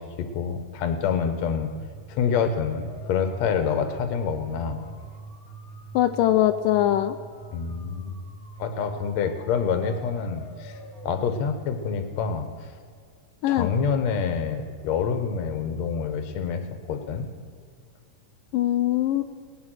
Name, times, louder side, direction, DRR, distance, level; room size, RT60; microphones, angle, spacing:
voice 1, 0.0-1.7 2.1-4.9 7.5-8.2 8.6-10.8 11.0-12.5 13.5-16.6 16.9-17.3, left 6 dB, 65° left, 8 dB, 2.2 m, -27 dB
sound 1, 1.6-12.9, right 2 dB, 30° left, 2.0 m, -44 dB
voice 2, 5.9-7.2 13.4-13.7 18.5-19.2, left 13 dB, 85° left, 8 dB, 2.2 m, -21 dB
20.0 x 9.5 x 6.4 m, 2.1 s
omnidirectional pair, 3.8 m